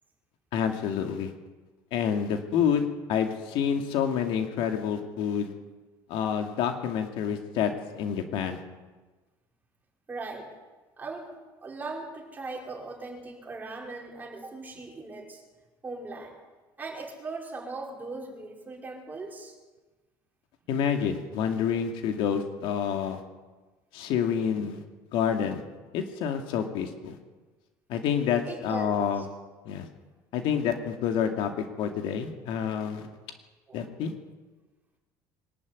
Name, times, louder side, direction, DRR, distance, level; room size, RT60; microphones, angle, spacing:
voice 1, 0.5-1.3 1.9-5.5 6.1-8.6 20.7-23.2 23.9-24.8 25.1-25.6 25.9-27.2 27.9-29.3 29.7-29.9 30.3-33.1 33.7-34.1, left 8 dB, 70° left, 5 dB, 2.5 m, -28 dB
voice 2, 10.1-10.5 11.0-11.3 11.6-15.4 15.8-16.4 16.8-19.6 28.4-29.3 33.7-33.8, right 3 dB, 20° right, -1 dB, 5.2 m, -39 dB
23.5 x 12.5 x 9.5 m, 1.3 s
cardioid pair, 140°, 9 cm